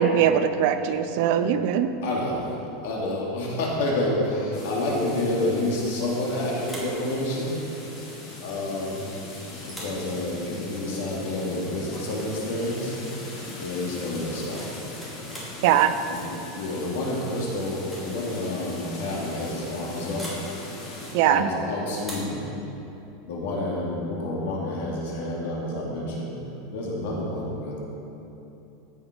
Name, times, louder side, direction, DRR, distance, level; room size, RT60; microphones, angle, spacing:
voice 1, 0.0-1.9 15.6-15.9 21.1-21.5, right 9 dB, 50° right, 10 dB, 0.7 m, -21 dB
voice 2, 2.0-7.5 8.4-9.0 9.6-13.0 13.6-14.7 16.1-16.3 16.5-20.3 21.2-22.5 23.2-26.3 26.7-27.8, left 1 dB, 70° left, -3 dB, 3.2 m, -29 dB
sound 1, 4.5-21.1, left 1 dB, 35° left, 2.9 m, -40 dB
sound 2, 6.6-7.0 8.9-9.2 9.6-10.0 11.9-12.1 12.4-12.7 14.2-15.6 17.1-17.4 17.8-18.1 18.4-18.5 20.2-20.5 22.0-22.4, equal, 5° left, 2.5 m, -41 dB
15.0 x 8.0 x 5.5 m, 3.0 s
supercardioid pair, 170°, 0 cm